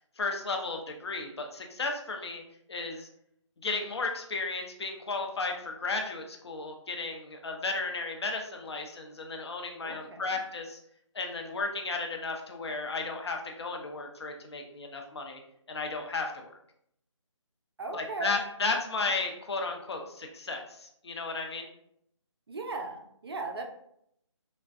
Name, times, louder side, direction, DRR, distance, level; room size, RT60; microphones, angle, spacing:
voice 1, 0.2-2.4 2.7-3.1 3.6-10.8 11.1-15.4 15.7-16.5 17.9-21.7, left 3 dB, 55° left, 2 dB, 0.6 m, -34 dB
voice 2, 9.8-10.4 17.8-18.4 22.5-23.6, right 3 dB, 50° right, 3 dB, 0.5 m, -37 dB
3.4 x 2.1 x 2.4 m, 0.72 s
figure-of-eight pair, 160°, 16 cm